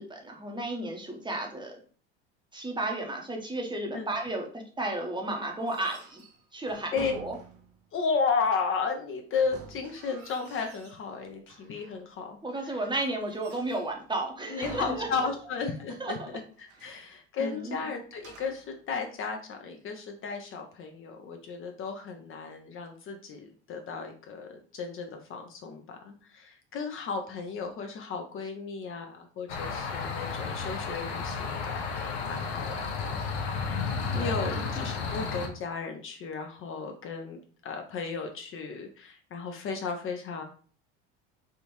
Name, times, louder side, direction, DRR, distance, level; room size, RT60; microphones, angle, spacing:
voice 1, 0.0-1.8 2.5-6.2 6.5-7.4 12.4-15.1 16.0-16.3 16.9-17.0 17.4-17.8 34.1-34.4, right 2 dB, 15° right, 2 dB, 0.8 m, -33 dB
sound 1, 5.6-7.9 9.4-11.1 11.5-12.1 12.6-14.0 14.6-15.7 16.0-16.1 16.5-17.1 18.1-18.7, right 5 dB, 45° right, 0.8 m, -49 dB
voice 2, 7.9-12.4 14.5-16.2 16.6-33.2 33.5-40.4, left 5 dB, 40° left, 4 dB, 0.6 m, -34 dB
sound 2, 29.5-35.5, left 5 dB, 75° left, 0.7 m, -32 dB
3.5 x 2.5 x 2.9 m, 0.42 s
hypercardioid pair, 70°, 33 cm